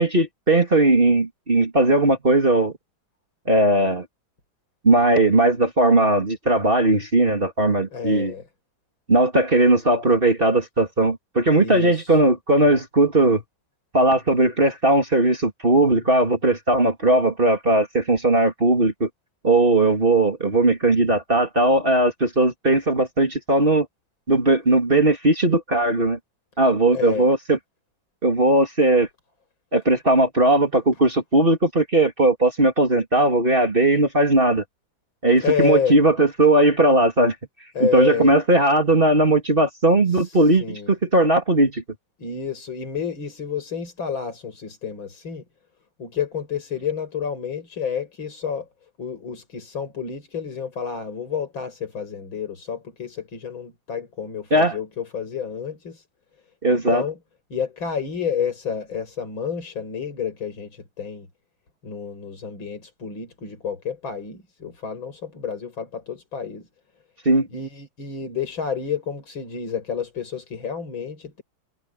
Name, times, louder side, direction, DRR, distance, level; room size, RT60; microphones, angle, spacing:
voice 1, 0.0-2.7 3.5-4.0 4.8-8.3 9.1-13.4 13.9-19.1 19.4-23.9 24.3-26.2 26.6-27.6 28.2-29.1 29.7-34.6 35.2-37.3 37.8-41.8 54.5-54.8 56.6-57.0 67.2-67.5, right 2 dB, 25° right, 3.1 m, -18 dB
voice 2, 7.9-8.4 11.6-12.2 26.9-27.3 35.4-36.0 37.7-38.3 40.1-40.9 42.2-45.4 46.0-48.7 49.0-56.0 56.7-57.2 57.5-61.3 61.8-66.7 67.5-71.4, left 7 dB, 80° left, 6.0 m, -29 dB
omnidirectional pair, 2.1 m